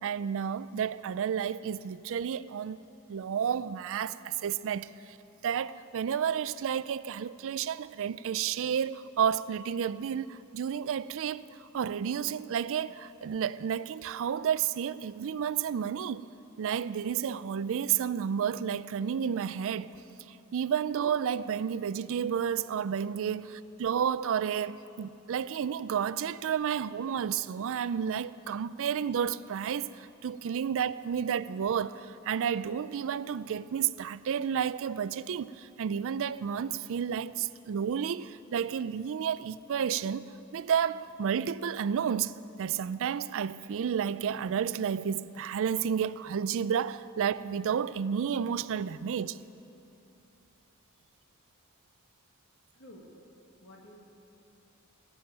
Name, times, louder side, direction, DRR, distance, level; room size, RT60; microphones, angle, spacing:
voice 1, 0.0-2.8 3.1-4.9 5.4-16.2 16.6-20.0 20.3-42.3 42.6-49.4, right 8 dB, 65° right, 0.4 m, -31 dB
voice 2, 52.7-53.1 53.6-54.0, left 1 dB, 55° left, 1.8 m, -52 dB
17.5 x 7.0 x 9.1 m
head